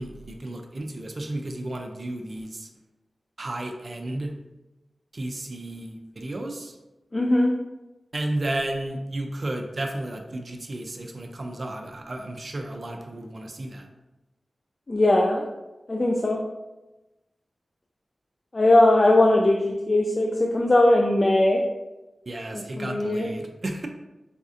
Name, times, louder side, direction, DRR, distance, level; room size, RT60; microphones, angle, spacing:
voice 1, 0.0-2.7 3.4-4.3 5.1-6.7 8.1-13.9 22.3-23.9, right 1 dB, 50° right, 3 dB, 0.4 m, -33 dB
voice 2, 7.1-7.5 14.9-15.4 15.9-16.4 18.5-21.6 22.8-23.3, left 1 dB, 35° left, -1 dB, 0.3 m, -19 dB
4.1 x 2.5 x 2.4 m, 1.0 s
wide cardioid pair, 85°, 0 cm